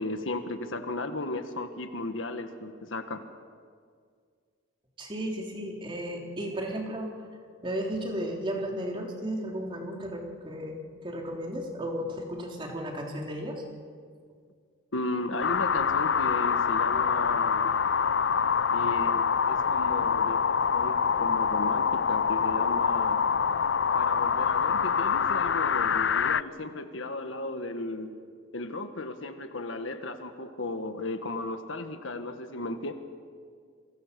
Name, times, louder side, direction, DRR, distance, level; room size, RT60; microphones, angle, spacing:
voice 1, 0.0-3.3 14.9-17.7 18.7-23.2 23.9-28.1 28.5-32.9, left 2 dB, 80° left, 7 dB, 1.6 m, -35 dB
voice 2, 5.0-7.2 7.6-13.6, equal, 25° right, 0 dB, 3.4 m, -34 dB
sound 1, 15.4-26.4, left 6 dB, 65° left, 0.6 m, -25 dB
29.5 x 23.0 x 6.9 m, 2.1 s
head